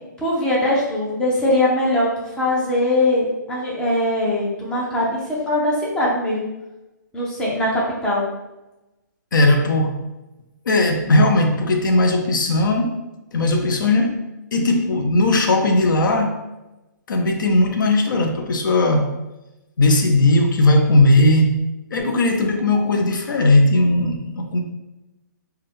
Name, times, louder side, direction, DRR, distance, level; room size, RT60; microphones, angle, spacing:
voice 1, 0.2-6.5 7.1-8.3, left 1 dB, 5° left, -6 dB, 0.6 m, -21 dB
voice 2, 9.3-10.0 10.7-13.0 13.3-14.2 14.5-16.4 17.1-19.2 19.8-21.6 21.9-24.6, left 2 dB, 80° left, 4 dB, 0.5 m, -17 dB
2.5 x 2.2 x 3.4 m, 1.0 s
hypercardioid pair, 150°, 10 cm